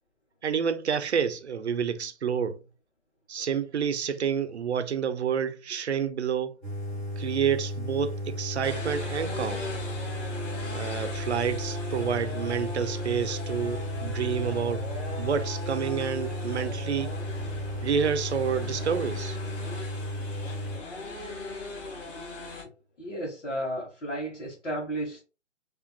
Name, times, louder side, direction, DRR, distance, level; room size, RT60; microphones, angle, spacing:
voice 1, 0.4-2.6 3.3-6.5 7.2-9.6 10.7-14.8 15.2-17.1 17.8-19.4, right 7 dB, 65° right, 0.7 m, -29 dB
sound 1, 6.6-20.8, left 1 dB, 5° left, 0.5 m, -34 dB
sound 2, 8.6-22.6, left 2 dB, 25° left, 1.9 m, -39 dB
voice 2, 23.0-25.2, right 1 dB, 70° left, 1.4 m, -33 dB
5.1 x 2.5 x 2.2 m
figure-of-eight pair, 130°, 36 cm